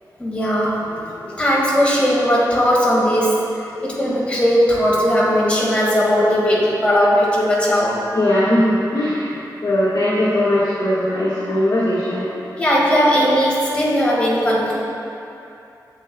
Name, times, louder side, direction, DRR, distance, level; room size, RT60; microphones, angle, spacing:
voice 1, 0.2-3.3 3.8-8.2 12.6-14.8, equal, 15° left, -6 dB, 1.8 m, -18 dB
voice 2, 8.1-9.3 9.6-12.3, left 1 dB, 70° left, -10 dB, 1.6 m, -19 dB
11.5 x 7.8 x 2.3 m, 2.8 s
wide cardioid pair, 145°, 7 cm